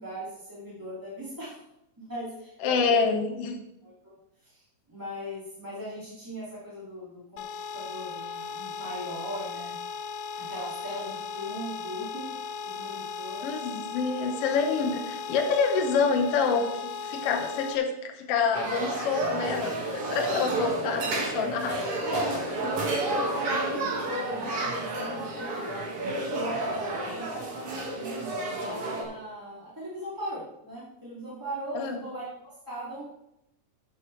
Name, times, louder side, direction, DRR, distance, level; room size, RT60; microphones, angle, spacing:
voice 1, 0.0-1.6 2.0-3.4 3.8-4.1 4.4-7.4 7.7-9.8 10.4-12.3 12.6-13.5 14.6-14.8 21.0-21.4 21.6-33.1, right 1 dB, 10° right, -8 dB, 1.6 m, -38 dB
voice 2, 2.6-3.6 13.4-21.8 31.7-32.0, left 5 dB, 70° left, 4 dB, 1.6 m, -27 dB
sound 1, 7.4-17.8, left 5 dB, 85° left, 2.3 m, -37 dB
sound 2, 18.5-29.0, right 2 dB, 50° right, 2.5 m, -31 dB
13.0 x 8.5 x 3.2 m, 0.86 s
omnidirectional pair, 3.7 m